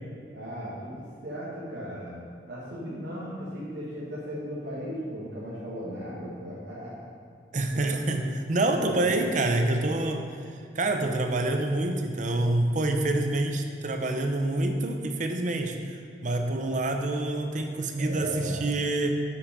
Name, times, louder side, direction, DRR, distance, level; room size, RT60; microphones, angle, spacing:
voice 1, 0.3-2.2 2.5-6.9 8.8-9.1 17.9-18.6, equal, 75° right, -9 dB, 2.0 m, -37 dB
voice 2, 7.5-10.3 10.7-19.1, right 2 dB, 45° right, 5 dB, 0.7 m, -27 dB
7.8 x 6.8 x 5.4 m, 2.4 s
head